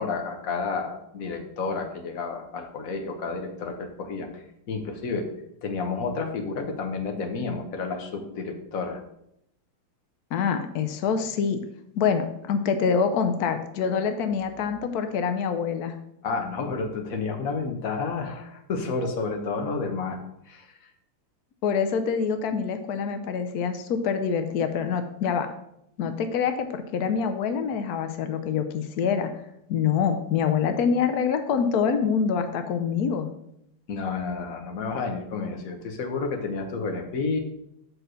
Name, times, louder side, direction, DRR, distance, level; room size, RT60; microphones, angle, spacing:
voice 1, 0.0-5.2 5.6-9.0 16.2-20.2 20.5-20.9 33.9-37.4, left 4 dB, 50° left, 4 dB, 1.2 m, -30 dB
voice 2, 10.3-11.6 11.9-15.9 21.6-25.5 26.0-29.3 29.7-33.3, left 6 dB, 85° left, 8 dB, 0.8 m, -25 dB
6.4 x 4.9 x 6.2 m, 0.77 s
omnidirectional pair, 2.4 m